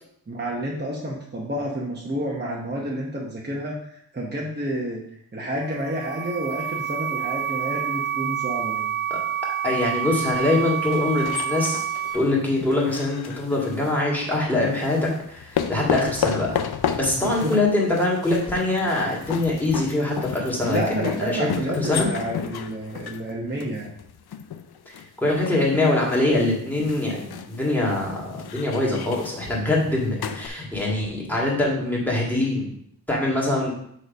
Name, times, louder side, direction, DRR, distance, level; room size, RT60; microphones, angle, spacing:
voice 1, 0.3-5.0 5.3-8.9 17.2-17.6 20.7-23.9, right 1 dB, 25° right, -3 dB, 0.9 m, -29 dB
sound 1, 5.6-12.1, right 10 dB, 75° right, 1.5 m, -28 dB
voice 2, 9.6-11.8 12.1-16.6 17.0-21.5 21.8-22.1 24.9-32.7 33.1-33.7, left 2 dB, 5° left, -5 dB, 2.0 m, -23 dB
sound 2, 10.8-14.0 14.7-30.5, left 8 dB, 70° left, 0.5 m, -33 dB
6.6 x 3.2 x 5.2 m, 0.68 s
wide cardioid pair, 110°, 40 cm